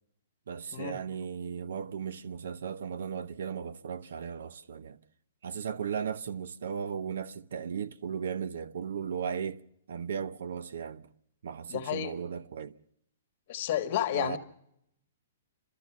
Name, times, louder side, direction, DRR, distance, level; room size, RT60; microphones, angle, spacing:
voice 1, 0.5-5.0 5.4-9.6 9.9-11.1 11.4-12.8 14.1-14.4, right 7 dB, 70° right, 0.8 m, -36 dB
voice 2, 11.7-12.1 13.5-14.4, left 12 dB, 40° left, 1.6 m, -31 dB
30.0 x 13.5 x 7.3 m
hypercardioid pair, 165°, 0 cm